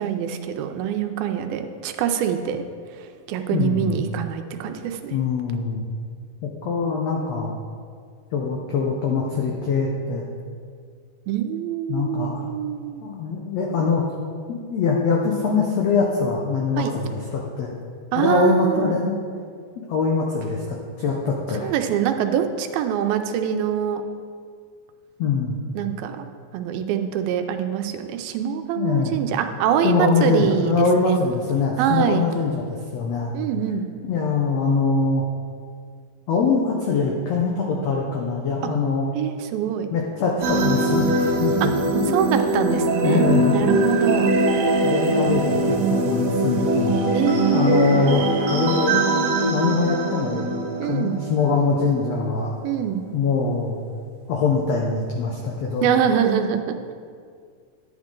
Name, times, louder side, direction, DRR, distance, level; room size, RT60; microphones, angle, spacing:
voice 1, 0.0-2.6 3.0-5.2 11.3-13.0 16.8-16.9 18.1-19.0 21.6-24.0 25.8-26.3 26.5-31.2 31.8-32.3 33.3-33.9 39.1-39.9 41.6-41.7 42.1-44.3 47.1-48.0 50.8-51.2 52.6-53.0 55.8-56.9, right 9 dB, 85° right, 7 dB, 2.5 m, -24 dB
voice 2, 3.5-4.0 5.1-5.8 6.4-7.5 8.3-10.3 11.9-12.5 13.0-14.1 14.5-17.7 18.1-19.2 19.9-21.7 25.2-25.6 28.8-29.2 29.8-33.3 34.0-35.2 36.3-39.1 39.9-42.3 43.0-43.7 44.8-47.1 47.5-48.2 48.5-49.2 49.4-50.5 50.8-52.5 53.1-53.8 54.3-55.9, left 4 dB, 85° left, -1 dB, 1.5 m, -23 dB
sound 1, 40.4-52.0, right 2 dB, 70° right, 2.3 m, -22 dB
10.5 x 9.8 x 3.7 m, 2.1 s
omnidirectional pair, 4.2 m